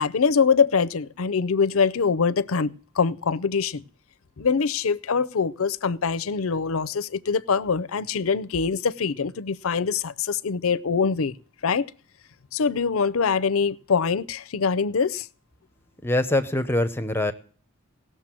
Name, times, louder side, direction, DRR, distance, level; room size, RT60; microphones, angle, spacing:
voice 1, 0.0-3.8 4.4-11.3 11.6-11.9 12.5-15.3, left 5 dB, 75° left, 0.6 m, -24 dB
voice 2, 16.0-17.3, left 1 dB, 10° left, 0.7 m, -23 dB
18.0 x 6.6 x 7.5 m
head